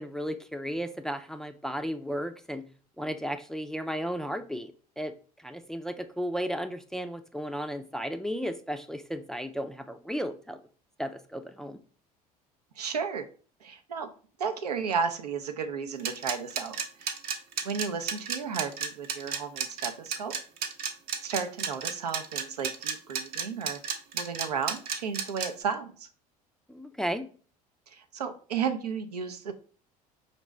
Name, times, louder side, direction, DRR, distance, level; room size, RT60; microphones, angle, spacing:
voice 1, 0.0-2.7 3.0-10.6 11.0-11.8 26.7-27.3, equal, ahead, 8 dB, 0.4 m, -34 dB
voice 2, 12.8-13.2 13.6-14.1 14.4-17.2 17.6-20.3 21.2-23.8 24.1-26.1 27.9-29.5, right 6 dB, 85° right, 7 dB, 0.5 m, -33 dB
sound 1, 16.0-25.5, right 6 dB, 50° right, 0.7 m, -32 dB
5.1 x 2.6 x 3.2 m, 0.40 s
hypercardioid pair, 65°, 20 cm